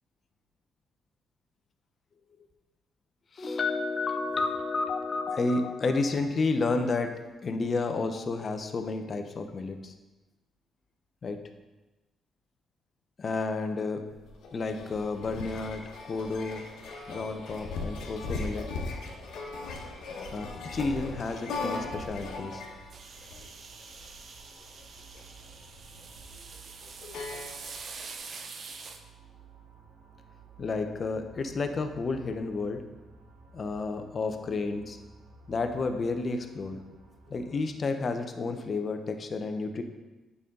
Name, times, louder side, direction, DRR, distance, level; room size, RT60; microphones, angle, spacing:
voice 1, 3.3-9.9 11.2-11.4 13.2-14.0 14.5-16.6 17.1-18.7 20.3-22.6 30.6-32.8 33.5-35.0 35.5-36.8 37.3-39.8, left 3 dB, 40° left, 6 dB, 0.8 m, -31 dB
sound 1, 14.1-28.0, left 3 dB, 80° left, 1.3 m, -39 dB
sound 2, 21.0-37.7, right 4 dB, 80° right, 1.1 m, -55 dB
sound 3, 22.9-29.0, right 5 dB, 55° right, 0.7 m, -45 dB
8.3 x 5.4 x 3.8 m, 1.1 s
cardioid pair, 90°, 0 cm